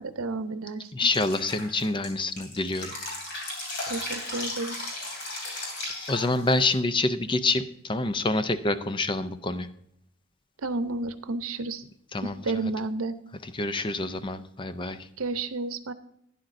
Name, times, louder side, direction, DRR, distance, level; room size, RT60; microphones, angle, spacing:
voice 1, 0.0-1.1 3.9-4.8 10.6-11.8 12.2-13.2 15.2-15.9, right 3 dB, 85° right, 11 dB, 0.8 m, -31 dB
voice 2, 0.9-2.9 6.1-9.7 12.1-12.4 13.5-15.0, left 2 dB, 25° left, 11 dB, 0.5 m, -27 dB
Drip, 1.1-6.7, left 2 dB, 55° left, 3.2 m, -36 dB
11.5 x 10.0 x 2.6 m, 0.72 s
head